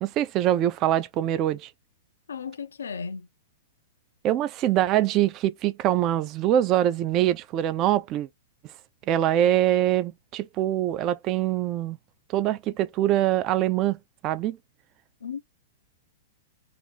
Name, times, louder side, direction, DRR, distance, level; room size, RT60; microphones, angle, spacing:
voice 1, 0.0-1.7 4.2-8.3 9.1-12.0 12.3-14.6, right 12 dB, 35° right, 0.4 m, -24 dB
voice 2, 2.3-3.3 15.2-15.4, left 6 dB, 75° left, 0.3 m, -35 dB
2.4 x 2.4 x 3.9 m
figure-of-eight pair, 105°, 0 cm